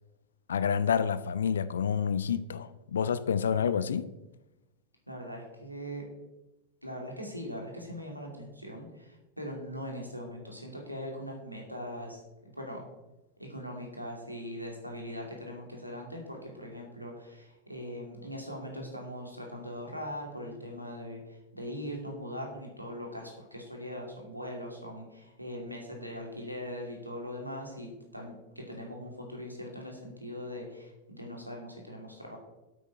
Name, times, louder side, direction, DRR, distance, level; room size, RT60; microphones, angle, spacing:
voice 1, 0.5-4.1, left 7 dB, 65° left, 0.5 m, -28 dB
voice 2, 5.1-6.1 6.8-12.8 13.4-32.4, equal, 90° right, 2.6 m, -41 dB
8.3 x 8.3 x 5.6 m
figure-of-eight pair, 90°, 0 cm